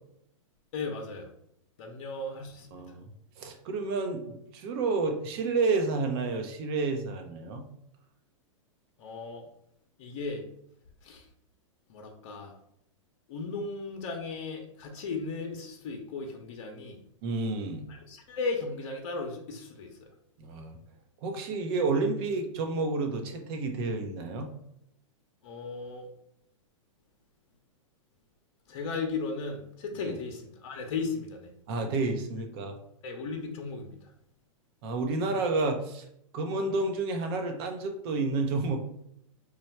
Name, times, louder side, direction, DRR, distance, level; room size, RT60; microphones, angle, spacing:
voice 1, 0.7-1.3 1.8-2.8 9.0-9.5 10.0-10.4 11.0-11.3 11.9-12.5 13.3-17.0 17.9-20.1 25.4-26.1 28.7-31.5 33.0-34.1, left 4 dB, 55° left, 2 dB, 0.7 m, -36 dB
voice 2, 2.7-3.1 3.4-7.6 17.2-17.9 20.4-20.8 21.2-24.5 30.1-30.2 31.7-32.8 34.8-36.0 36.3-38.8, right 3 dB, 50° right, 5 dB, 0.8 m, -30 dB
3.2 x 2.3 x 4.3 m, 0.73 s
hypercardioid pair, 125°, 17 cm